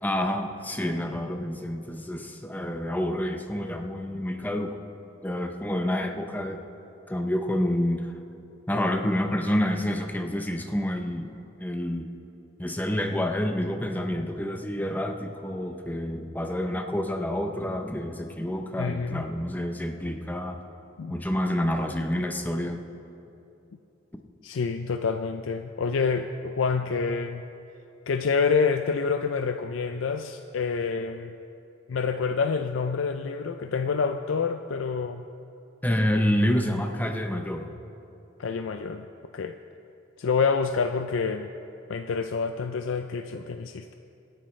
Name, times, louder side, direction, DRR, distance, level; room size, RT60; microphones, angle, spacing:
voice 1, 0.0-4.8 5.2-6.6 7.1-8.1 8.7-12.1 12.6-20.6 21.1-22.8 24.1-24.2 35.8-37.7, left 1 dB, 10° left, 4 dB, 0.7 m, -28 dB
voice 2, 18.8-19.3 21.0-21.2 24.4-27.5 28.1-31.3 31.9-35.3 38.4-39.1 39.3-39.5 40.2-41.5 41.9-43.9, left 5 dB, 80° left, 7 dB, 0.4 m, -27 dB
25.0 x 10.0 x 3.2 m, 2.8 s
head